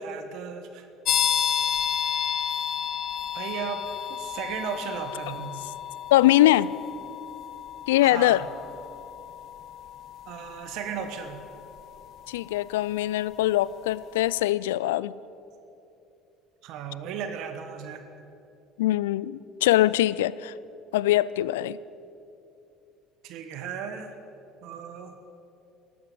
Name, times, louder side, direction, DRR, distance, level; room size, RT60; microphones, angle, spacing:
voice 1, 0.0-0.9 3.3-5.6 8.0-8.5 10.3-11.4 16.6-18.0 23.2-24.1 24.6-25.1, right 7 dB, 70° right, 8 dB, 1.2 m, -35 dB
sound 1, 1.0-13.6, left 9 dB, 55° left, 1.0 m, -32 dB
voice 2, 6.1-6.7 7.9-8.4 12.3-15.2 18.8-20.5 20.9-21.8, left 15 dB, 85° left, 20 dB, 0.3 m, -22 dB
13.0 x 11.5 x 8.4 m, 2.7 s
hypercardioid pair, 70°, 0 cm